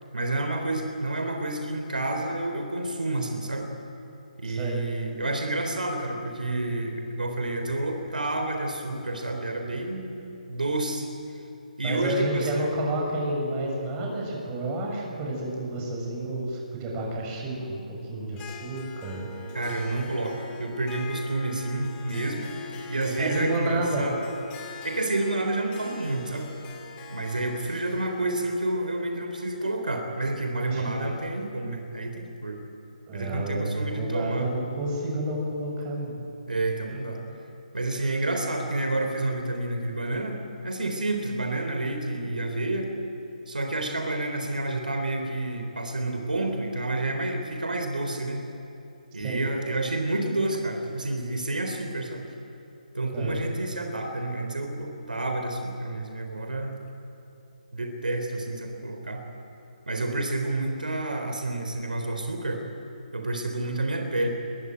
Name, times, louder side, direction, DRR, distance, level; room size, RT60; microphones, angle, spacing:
voice 1, 0.1-3.7 4.4-10.1 10.5-11.1 11.8-12.7 19.5-24.2 24.8-26.5 27.1-32.6 33.1-34.5 36.5-37.2 37.7-42.9 43.5-48.4 49.1-52.3 52.9-56.8 57.7-59.2 59.9-62.6 63.1-64.3, right 2 dB, 75° right, 4 dB, 3.7 m, -29 dB
voice 2, 4.4-4.8 11.8-19.3 20.0-20.1 23.2-24.1 30.7-31.0 33.1-36.2 49.2-49.4 53.1-53.4, right 1 dB, 20° right, -2 dB, 7.0 m, -30 dB
Harp, 18.3-30.2, left 4 dB, 20° left, 2.8 m, -43 dB
23.0 x 21.5 x 9.3 m, 2.8 s
figure-of-eight pair, 145°, 5 cm